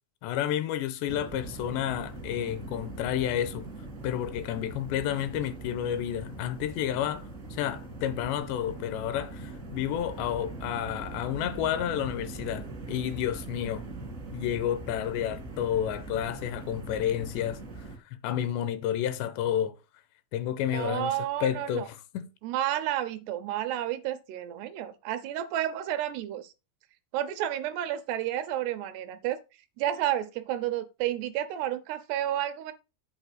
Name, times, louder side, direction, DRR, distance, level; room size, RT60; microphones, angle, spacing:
voice 1, 0.2-3.7 4.0-13.9 14.3-17.6 18.2-19.8 20.3-22.3, left 10 dB, 85° left, 2.8 m, -30 dB
sound 1, 1.1-18.0, right 2 dB, 60° right, 0.8 m, -41 dB
voice 2, 20.7-21.9 22.4-26.5 27.1-29.4 29.8-32.7, right 12 dB, 80° right, 2.4 m, -31 dB
8.1 x 4.3 x 6.6 m
omnidirectional pair, 5.2 m